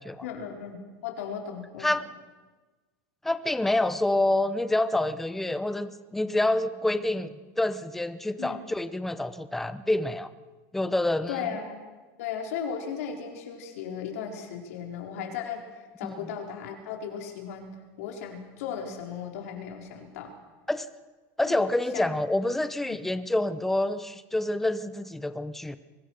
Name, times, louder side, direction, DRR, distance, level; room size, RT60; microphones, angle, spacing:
voice 1, 0.2-1.9 8.4-8.6 11.3-11.9 12.2-15.6 16.0-20.3 21.5-22.1 22.8-23.0, left 7 dB, 70° left, 2 dB, 4.4 m, -36 dB
voice 2, 3.2-10.3 10.7-11.5 16.0-16.2 20.7-20.9 21.4-25.8, left 1 dB, 5° left, 12 dB, 0.7 m, -27 dB
24.5 x 20.0 x 6.4 m, 1.3 s
supercardioid pair, 180°, 8 cm